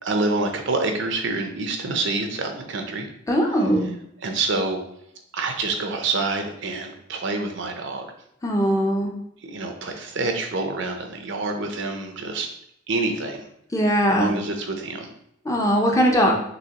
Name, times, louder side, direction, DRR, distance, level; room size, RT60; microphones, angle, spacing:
voice 1, 0.0-3.1 4.2-4.8 5.3-8.1 9.4-12.5 12.9-13.4 14.2-15.1, right 3 dB, 65° right, 4 dB, 0.7 m, -27 dB
voice 2, 3.3-3.9 8.4-9.1 13.7-14.3 15.4-16.3, equal, 15° left, 0 dB, 0.7 m, -20 dB
6.1 x 2.9 x 2.9 m, 0.74 s
head